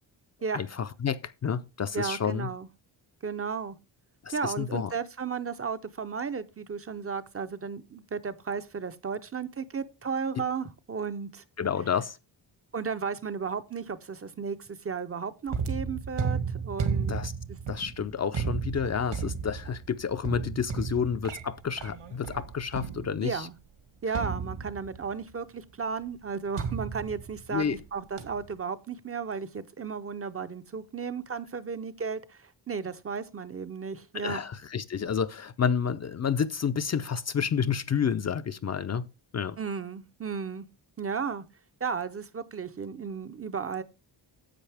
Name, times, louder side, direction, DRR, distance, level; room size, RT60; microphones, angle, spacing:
voice 1, 0.5-2.5 4.2-4.9 11.6-12.2 17.1-17.3 17.7-23.5 27.5-27.8 34.1-39.1 39.3-39.6, left 7 dB, 40° left, 0.5 m, -30 dB
voice 2, 1.9-2.7 3.2-3.8 4.3-11.4 12.7-17.2 23.2-23.5 24.0-34.4 39.6-40.7 41.0-41.4 41.8-43.8, right 5 dB, 30° right, 0.6 m, -34 dB
sound 1, 15.5-23.4 24.1-25.1 26.6-27.8 28.2-28.5, right 6 dB, 70° right, 2.1 m, -34 dB
10.0 x 7.9 x 3.4 m
wide cardioid pair, 160°, 44 cm